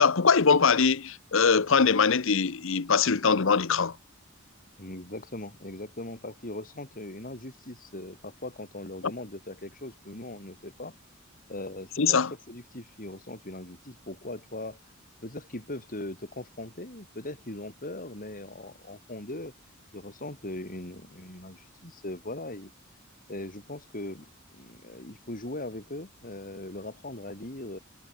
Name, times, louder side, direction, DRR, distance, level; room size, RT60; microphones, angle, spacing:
voice 1, 0.0-4.0 12.0-12.3, left 5 dB, 70° left, 0.9 m, -22 dB
voice 2, 4.8-10.9 11.5-12.2 12.5-14.8 15.2-19.5 19.9-22.7 23.3-27.8, left 1 dB, 45° left, 5.8 m, -40 dB
head